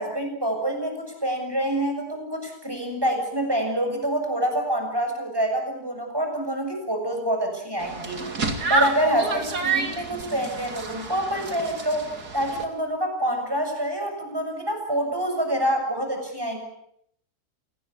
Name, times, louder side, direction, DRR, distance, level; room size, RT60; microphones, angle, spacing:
voice 1, 0.0-8.2 8.7-12.1 12.3-16.6, right 1 dB, 15° right, 4 dB, 7.0 m, -26 dB
sound 1, 7.8-12.6, right 4 dB, 80° right, 3.3 m, -29 dB
28.0 x 18.5 x 8.5 m, 0.73 s
omnidirectional pair, 1.7 m